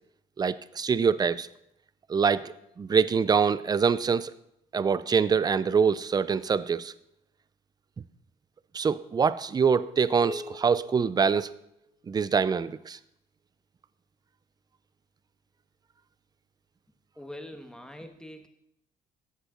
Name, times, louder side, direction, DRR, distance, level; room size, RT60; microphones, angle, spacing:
voice 1, 0.4-1.5 2.1-4.3 4.7-6.9 8.7-11.5 12.1-13.0, right 6 dB, 25° right, 16 dB, 0.5 m, -25 dB
sound 1, 10.2-12.2, left 2 dB, 55° left, 3.4 m, -44 dB
voice 2, 17.2-18.5, left 1 dB, 5° left, 6 dB, 1.3 m, -43 dB
14.0 x 8.1 x 3.8 m, 0.80 s
cardioid pair, 110°, 17 cm